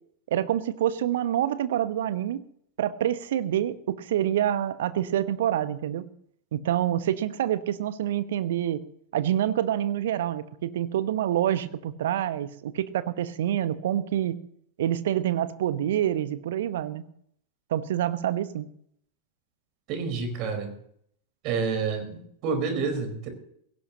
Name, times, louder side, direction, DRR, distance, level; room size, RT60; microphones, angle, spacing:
voice 1, 0.3-2.4 2.8-6.1 6.5-8.8 9.1-14.4 14.8-17.0 17.7-18.7, right 11 dB, 60° right, 13 dB, 1.1 m, -27 dB
voice 2, 19.9-20.7 21.4-23.3, right 5 dB, 40° right, 6 dB, 4.6 m, -29 dB
20.0 x 17.5 x 3.0 m, 0.67 s
figure-of-eight pair, 90°, 0 cm